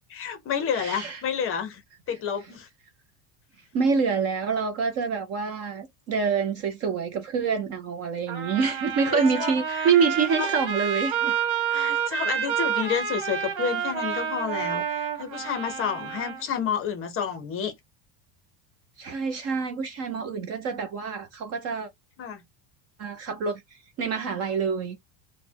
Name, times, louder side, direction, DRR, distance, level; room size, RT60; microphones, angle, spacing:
voice 1, 0.1-1.8 2.1-2.7 9.0-9.9 10.4-10.5 11.7-17.7 22.2-22.4, left 7 dB, 30° left, 0.5 m, -30 dB
voice 2, 0.7-1.2 3.7-11.3 19.0-21.9 23.0-23.6 24.0-25.0, right 5 dB, 35° right, 0.4 m, -26 dB
Trumpet, 8.3-16.4, right 8 dB, 55° right, 1.8 m, -29 dB
4.1 x 2.1 x 4.4 m
cardioid pair, 165°, 49 cm